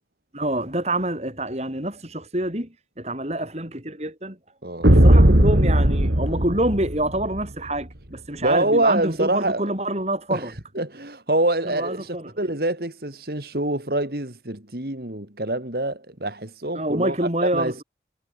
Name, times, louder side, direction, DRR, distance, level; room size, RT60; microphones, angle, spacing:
voice 1, 0.3-4.4 4.8-10.5 11.6-12.3 16.7-17.8, right 1 dB, 35° right, 5.1 m, -27 dB
sound 1, 4.8-7.4, right 1 dB, 75° right, 3.4 m, -17 dB
voice 2, 8.4-9.7 10.3-17.8, right 1 dB, 55° right, 2.7 m, -26 dB
head